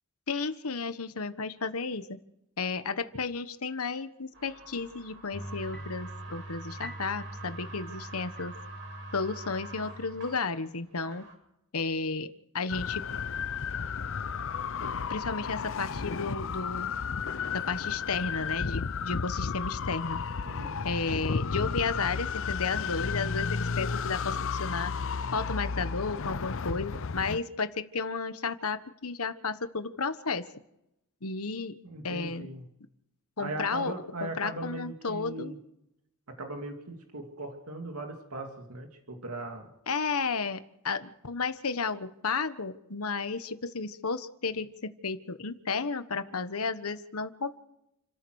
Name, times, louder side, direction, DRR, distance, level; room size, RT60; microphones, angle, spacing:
voice 1, 0.3-2.2 2.6-8.5 9.1-11.3 11.7-13.1 14.8-16.9 17.5-20.2 20.8-24.9 25.3-30.5 31.2-31.8 32.0-32.5 33.4-33.9 34.2-35.5 39.9-47.6, left 4 dB, 85° left, 10 dB, 1.4 m, -33 dB
sound 1, 4.3-11.4, right 3 dB, 60° right, 7.4 m, -47 dB
sound 2, 5.3-10.4, right 1 dB, 5° left, 1.1 m, -43 dB
sound 3, 12.7-27.4, left 5 dB, 65° left, 0.7 m, -33 dB
voice 2, 20.4-20.8 31.8-32.6 33.4-35.6 36.3-39.7, right 2 dB, 90° right, 3 dB, 2.6 m, -39 dB
29.0 x 14.0 x 6.5 m, 0.82 s
head